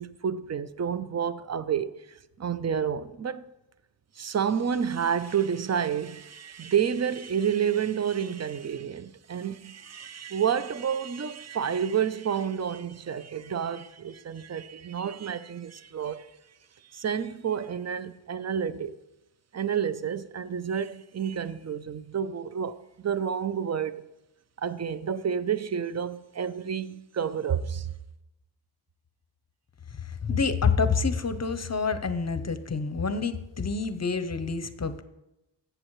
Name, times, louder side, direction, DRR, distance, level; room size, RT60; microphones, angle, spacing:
voice 1, 0.0-1.9 2.4-3.4 4.2-16.3 16.9-19.0 19.5-22.8 23.0-24.0 24.6-27.9, right 8 dB, 35° right, 0.5 m, -29 dB
voice 2, 29.9-35.0, left 5 dB, 35° left, 0.7 m, -27 dB
14.0 x 7.9 x 3.1 m
wide cardioid pair, 85°, 45 cm